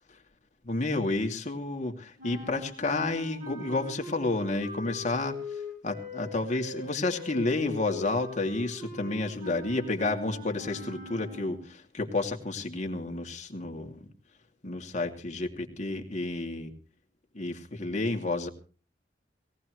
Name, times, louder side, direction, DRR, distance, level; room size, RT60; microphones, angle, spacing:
voice 1, 0.6-14.1 14.6-16.7 17.3-18.5, left 2 dB, 45° left, 3 dB, 2.6 m, -31 dB
sound 1, 2.2-11.7, left 2 dB, 50° right, 7.9 m, -42 dB
19.5 x 18.5 x 3.2 m, 0.36 s
head